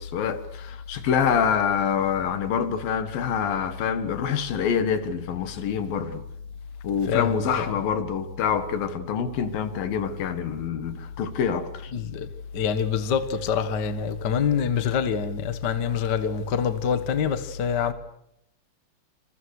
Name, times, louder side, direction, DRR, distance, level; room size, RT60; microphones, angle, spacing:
voice 1, 0.0-6.2 6.8-11.9, left 7 dB, 75° left, 3.4 m, -26 dB
voice 2, 7.0-7.8 11.9-17.9, left 7 dB, 45° left, 1.4 m, -26 dB
28.0 x 26.5 x 6.6 m
omnidirectional pair, 4.2 m